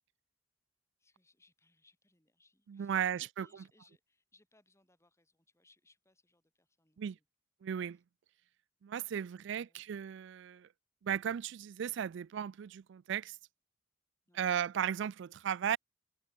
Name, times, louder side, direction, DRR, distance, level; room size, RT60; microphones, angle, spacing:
voice 1, 1.0-7.3 7.9-8.0 9.2-9.9 14.3-14.6, left 2 dB, 15° left, 7.4 m, -70 dB
voice 2, 2.7-3.4 7.0-7.2 7.6-8.0 8.8-10.7 11.0-13.4 14.4-15.8, right 8 dB, 65° right, 0.3 m, -35 dB
open air
head